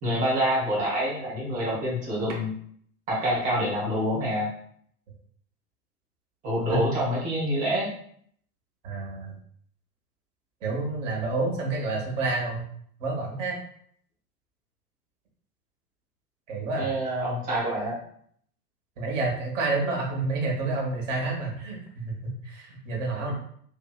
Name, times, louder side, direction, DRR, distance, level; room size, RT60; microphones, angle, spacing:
voice 1, 0.0-2.5 3.1-4.5 6.4-7.9 16.8-18.0, equal, 15° right, -4 dB, 0.8 m, -26 dB
voice 2, 8.8-9.3 10.6-12.6 13.0-13.6 16.5-16.9 19.0-23.3, right 3 dB, 50° right, 0 dB, 1.0 m, -29 dB
2.8 x 2.6 x 2.2 m, 0.64 s
figure-of-eight pair, 105°, 48 cm